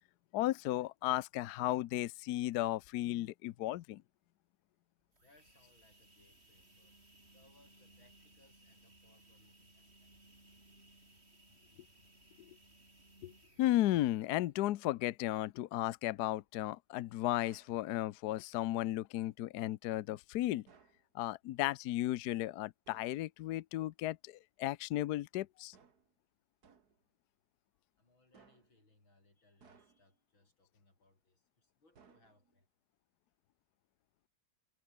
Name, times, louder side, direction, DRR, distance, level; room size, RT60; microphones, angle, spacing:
voice 1, 0.3-4.0 13.2-13.3 13.6-20.6 21.1-25.7, left 15 dB, 70° left, 1.0 m, -35 dB
sound 1, 5.0-14.5, right 1 dB, 30° right, 6.3 m, -63 dB
voice 2, 5.2-10.3 27.7-32.7, left 2 dB, 90° left, 8.9 m, -70 dB
sound 2, 17.4-17.8 20.7-21.1 22.8-23.2 25.7-26.1 26.6-27.0 28.3-28.8 29.6-30.2 31.9-32.6, right 6 dB, 50° right, 2.5 m, -64 dB
omnidirectional pair, 2.1 m